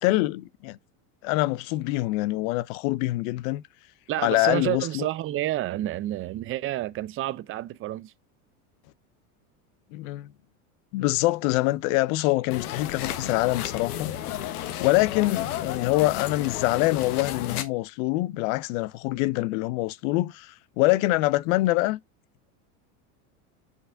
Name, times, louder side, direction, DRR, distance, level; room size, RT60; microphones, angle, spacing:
voice 1, 0.0-0.8 1.2-3.6 4.2-5.1 9.9-10.3 10.9-14.2 14.8-22.0, left 19 dB, 65° left, 0.5 m, -25 dB
voice 2, 4.1-8.1, right 14 dB, 30° right, 0.5 m, -29 dB
sound 1, 12.5-17.6, left 11 dB, 90° left, 1.1 m, -33 dB
6.5 x 5.6 x 2.6 m
supercardioid pair, 120°, 43 cm